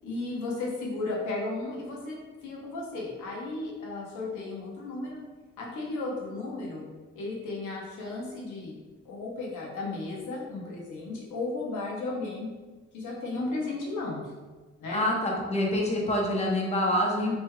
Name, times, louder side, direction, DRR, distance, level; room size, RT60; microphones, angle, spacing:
voice 1, 0.0-5.2 5.6-6.9 7.1-8.8 9.0-12.5 12.9-14.2 14.8-15.0 17.2-17.4, left 2 dB, 85° left, -3 dB, 0.9 m, -34 dB
voice 2, 14.9-17.4, left 1 dB, 20° left, -2 dB, 0.7 m, -26 dB
3.1 x 3.0 x 2.2 m, 1.3 s
cardioid pair, 90°, 30 cm